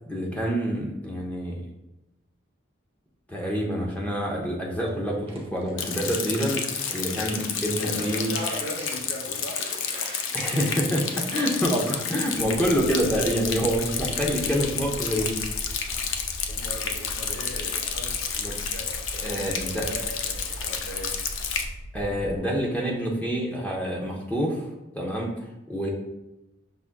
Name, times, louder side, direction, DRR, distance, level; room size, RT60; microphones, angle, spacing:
voice 1, 0.1-1.6 3.3-8.3 10.3-11.0 11.3-15.4 18.4-18.5 19.2-19.8 21.9-24.7 24.9-25.9, equal, 5° left, -2 dB, 0.7 m, -27 dB
sound 1, 4.9-7.7 8.0-12.5 12.9-14.0, right 2 dB, 30° right, 0.7 m, -45 dB
Rain, 5.8-21.6, left 6 dB, 90° left, 0.5 m, -31 dB
voice 2, 7.8-9.6 10.9-11.6 15.9-16.0 16.5-21.1, left 1 dB, 60° left, 0 dB, 0.8 m, -38 dB
sound 2, 12.4-22.4, right 1 dB, 75° right, 0.6 m, -39 dB
5.7 x 3.6 x 2.2 m, 0.95 s
head